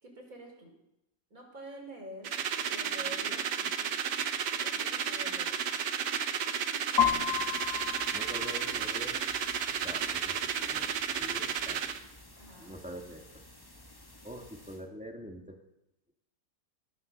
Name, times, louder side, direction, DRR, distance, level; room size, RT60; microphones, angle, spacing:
voice 1, 0.0-0.7 1.3-2.3 2.7-4.0 4.6-5.6 12.4-12.7, right 1 dB, 45° right, 1 dB, 4.5 m, -47 dB
sound 1, 2.2-12.0, right 7 dB, 65° right, 1.5 m, -32 dB
sound 2, 7.0-14.8, left 9 dB, 15° left, 1.3 m, -37 dB
voice 2, 8.1-9.2 9.8-10.9 11.1-11.8 12.5-13.2 14.2-15.6, equal, 5° right, 2 dB, 1.8 m, -44 dB
20.5 x 7.6 x 6.7 m, 0.83 s
omnidirectional pair, 2.0 m